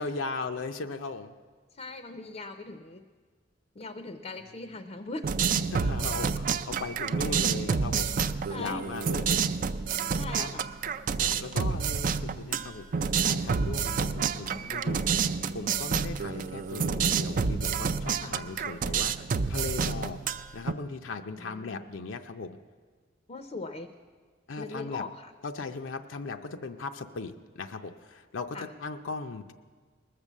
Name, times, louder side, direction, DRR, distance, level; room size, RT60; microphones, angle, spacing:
voice 1, 0.0-1.3 5.7-9.6 10.0-10.5 11.2-15.0 15.5-22.6 24.5-25.1 25.4-29.5, left 3 dB, 80° left, 6 dB, 0.6 m, -38 dB
voice 2, 1.8-3.0 3.8-5.3 8.5-8.8 10.1-10.7 11.6-11.7 18.2-18.3 21.4-21.8 23.3-23.9 24.6-25.1 28.5-28.7, left 3 dB, 35° left, 8 dB, 0.5 m, -40 dB
sound 1, 5.2-20.7, right 6 dB, 45° right, 0.4 m, -29 dB
20.0 x 6.8 x 7.3 m, 1.5 s
head